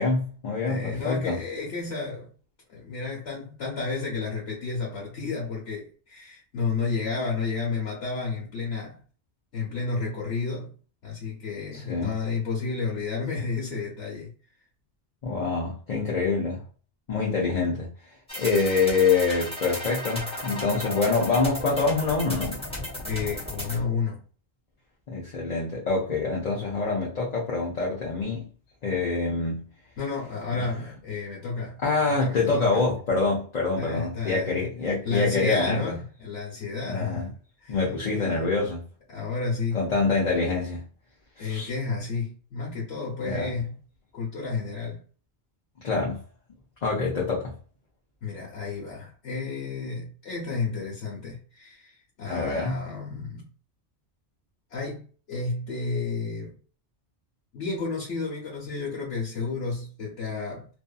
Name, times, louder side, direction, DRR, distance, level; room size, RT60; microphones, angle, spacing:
voice 1, 0.0-1.4 11.7-12.1 15.2-16.6 17.1-17.9 18.3-22.6 25.1-28.5 28.8-29.7 30.5-30.6 31.8-35.9 36.8-37.3 37.7-38.9 39.7-40.8 41.4-41.7 43.3-43.5 45.8-46.2 46.8-47.5 52.3-52.8, left 4 dB, 45° left, 0.7 m, -26 dB
voice 2, 0.6-2.3 2.7-9.0 9.5-10.7 11.0-14.3 23.0-24.2 30.0-31.8 32.1-32.9 33.8-34.7 35.0-37.3 37.6-37.8 38.1-38.6 39.1-39.8 41.4-43.8 44.1-45.0 48.2-53.5 54.7-55.0 55.3-56.6 57.5-60.7, left 4 dB, 85° left, 1.3 m, -31 dB
sound 1, 18.3-23.9, left 1 dB, 5° left, 0.8 m, -34 dB
2.6 x 2.5 x 2.2 m
omnidirectional pair, 1.2 m